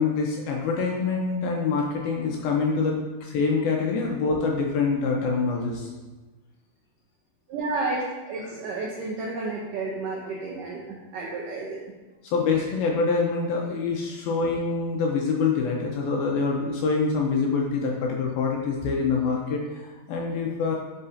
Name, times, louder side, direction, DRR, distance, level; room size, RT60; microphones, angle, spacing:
voice 1, 0.0-5.9 12.2-20.8, left 4 dB, 80° left, -1 dB, 2.3 m, -25 dB
voice 2, 7.5-11.9, right 3 dB, 85° right, -3 dB, 1.9 m, -31 dB
11.0 x 5.7 x 2.7 m, 1.2 s
omnidirectional pair, 4.9 m